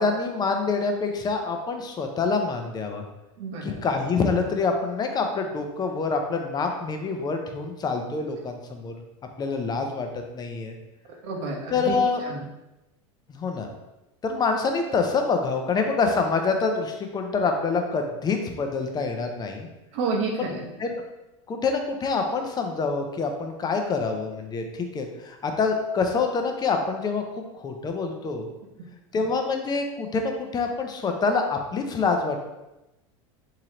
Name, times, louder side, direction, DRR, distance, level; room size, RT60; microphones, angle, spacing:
voice 1, 0.0-3.0 3.6-8.9 9.4-10.8 11.7-12.2 13.3-13.7 14.2-19.7 20.4-20.5 20.8-20.9 21.5-28.5 29.1-32.4, left 4 dB, 25° left, 4 dB, 0.5 m, -26 dB
voice 2, 3.4-3.8 11.2-11.9 12.2-12.4 19.9-20.7 28.8-28.9, right 4 dB, 65° right, 0 dB, 0.9 m, -30 dB
3.7 x 3.0 x 2.9 m, 0.97 s
supercardioid pair, 110°, 16 cm